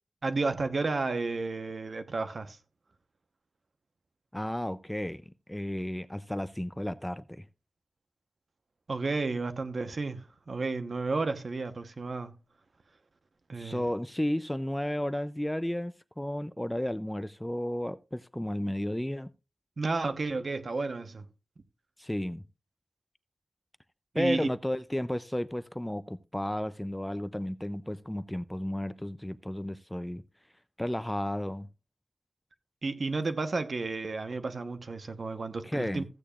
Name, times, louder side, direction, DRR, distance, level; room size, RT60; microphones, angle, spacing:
voice 1, 0.2-2.6 8.9-12.4 13.5-13.9 19.8-21.3 24.1-24.5 32.8-36.0, right 3 dB, 60° right, 1.0 m, -32 dB
voice 2, 4.3-7.5 13.5-19.3 22.0-22.4 24.1-30.2 30.8-31.7 35.6-36.1, left 1 dB, 10° left, 0.5 m, -33 dB
15.0 x 8.5 x 2.4 m
wide cardioid pair, 100°, 0 cm